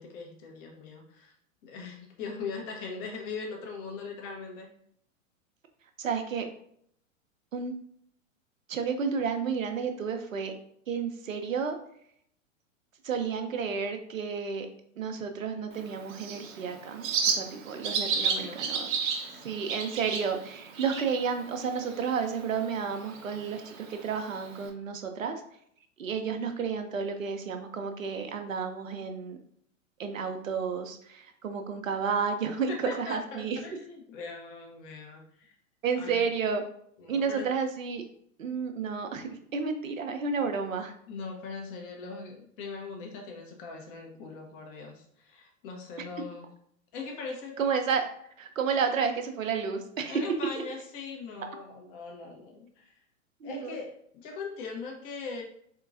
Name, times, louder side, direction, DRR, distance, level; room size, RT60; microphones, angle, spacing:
voice 1, 0.0-1.3 1.6-4.7 18.0-18.6 19.0-19.4 32.7-35.5 36.0-36.2 37.0-37.6 41.1-46.5 46.9-47.6 48.7-48.8 50.1-52.9 53.4-55.4, left 4 dB, 40° left, 1 dB, 1.0 m, -40 dB
voice 2, 6.0-6.5 7.5-7.7 8.7-10.5 10.9-11.8 13.0-14.7 15.0-18.9 19.4-25.4 26.0-29.4 30.0-33.6 35.8-36.6 37.1-38.0 38.4-40.9 47.6-48.1 48.4-50.2 53.4-53.8, right 6 dB, 80° right, 6 dB, 0.6 m, -31 dB
Bird, 15.7-24.7, right 5 dB, 40° right, 0.6 m, -34 dB
3.8 x 2.8 x 2.5 m, 0.67 s
figure-of-eight pair, 100°, 40 cm